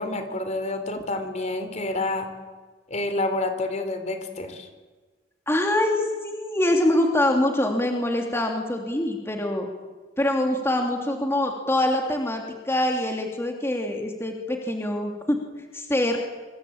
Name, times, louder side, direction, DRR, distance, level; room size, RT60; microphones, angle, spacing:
voice 1, 0.0-2.3 2.9-4.7, left 2 dB, 40° left, 9 dB, 3.6 m, -28 dB
voice 2, 5.5-9.7 10.2-15.4 15.7-16.2, left 1 dB, 15° left, 2 dB, 3.0 m, -24 dB
26.0 x 26.0 x 8.9 m, 1.3 s
head